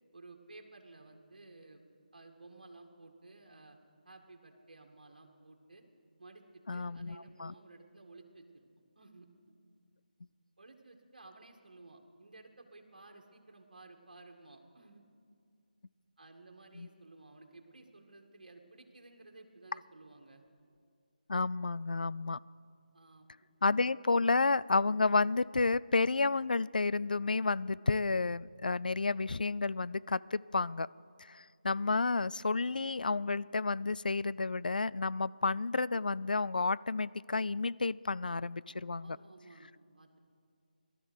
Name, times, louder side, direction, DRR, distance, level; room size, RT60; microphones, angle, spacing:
voice 1, 0.1-1.8 2.1-3.8 4.0-5.8 6.2-8.7 9.0-9.3 10.6-15.0 16.2-20.4 22.9-23.3 39.0-40.3, right 2 dB, 65° right, 3 dB, 2.1 m, -55 dB
voice 2, 6.7-7.5 16.8-16.9 21.3-22.4 23.6-30.9 31.2-39.2, left 3 dB, 70° left, 20 dB, 0.3 m, -31 dB
18.0 x 12.5 x 6.4 m, 2.3 s
figure-of-eight pair, 160°, 5 cm